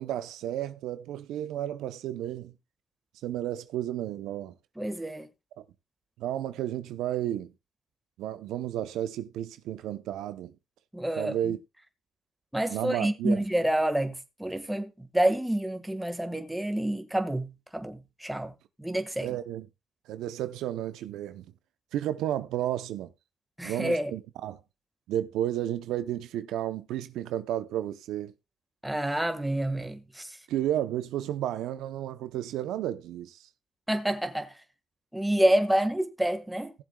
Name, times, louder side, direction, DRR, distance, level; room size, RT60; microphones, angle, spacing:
voice 1, 0.0-2.5 3.2-4.5 6.2-7.5 8.2-10.5 11.1-11.6 12.7-13.4 19.2-19.7 20.1-21.4 21.9-23.1 23.6-24.6 25.1-28.3 30.5-33.4, right 12 dB, 90° right, 0.6 m, -32 dB
voice 2, 4.8-5.3 10.9-11.5 12.5-18.5 18.8-19.3 23.6-24.1 28.8-30.4 33.9-34.6 35.1-36.7, right 1 dB, 5° right, 1.5 m, -28 dB
18.5 x 7.5 x 2.3 m
cardioid pair, 90°, 0 cm